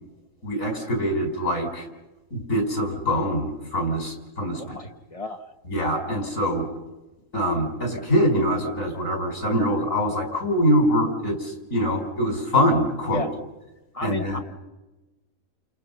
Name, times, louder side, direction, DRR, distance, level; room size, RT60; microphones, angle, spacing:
voice 1, 0.4-1.9 2.3-4.8 5.7-6.7 7.3-13.3 14.0-14.4, equal, 85° left, 3 dB, 5.6 m, -24 dB
voice 2, 4.6-5.4 13.1-13.3 13.9-14.4, left 3 dB, 25° left, 6 dB, 1.6 m, -33 dB
30.0 x 29.0 x 5.6 m, 1.1 s
omnidirectional pair, 1.3 m